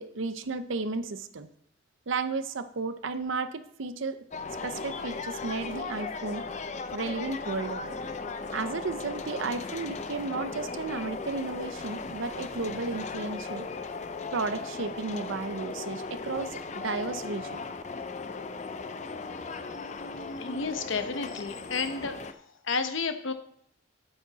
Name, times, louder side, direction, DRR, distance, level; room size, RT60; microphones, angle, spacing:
voice 1, 0.0-1.5 2.1-4.3 4.6-6.5 6.9-8.0 8.5-13.7 14.3-17.6, right 3 dB, 70° right, 11 dB, 0.7 m, -33 dB
sound 1, 4.3-22.3, left 4 dB, 35° left, 0.5 m, -37 dB
voice 2, 20.4-22.2 22.6-23.3, left 4 dB, 70° left, 8 dB, 0.9 m, -31 dB
8.9 x 8.5 x 4.0 m, 0.72 s
head